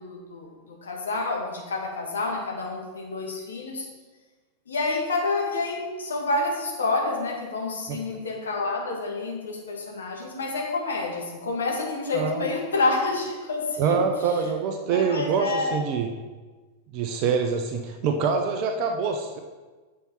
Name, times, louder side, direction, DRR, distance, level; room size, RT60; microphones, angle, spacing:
voice 1, 0.0-3.9 4.7-14.0 14.9-15.8, left 3 dB, 70° left, -1 dB, 1.9 m, -28 dB
voice 2, 12.1-12.5 13.8-16.1 16.9-19.4, right 5 dB, 40° right, 5 dB, 0.8 m, -25 dB
8.9 x 6.0 x 4.3 m, 1.3 s
figure-of-eight pair, 90°, 0 cm